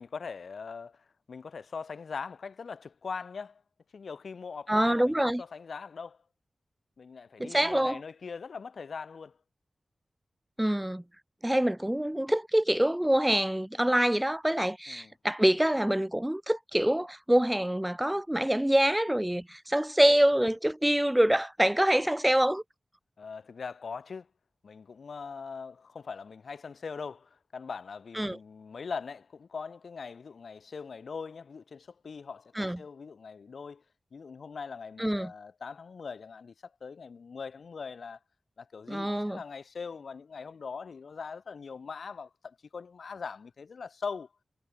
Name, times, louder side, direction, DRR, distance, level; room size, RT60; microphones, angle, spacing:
voice 1, 0.0-3.6 3.9-6.2 7.0-9.4 14.9-15.1 23.2-24.3 24.6-33.8 34.1-38.2 38.6-44.3, left 5 dB, 80° left, 5.5 m, -41 dB
voice 2, 4.7-5.4 7.4-8.0 10.6-11.0 11.4-22.6 28.2-28.4 32.6-32.8 35.0-35.3 38.9-39.4, right 1 dB, 10° right, 1.3 m, -25 dB
wide cardioid pair, 95°, 0 cm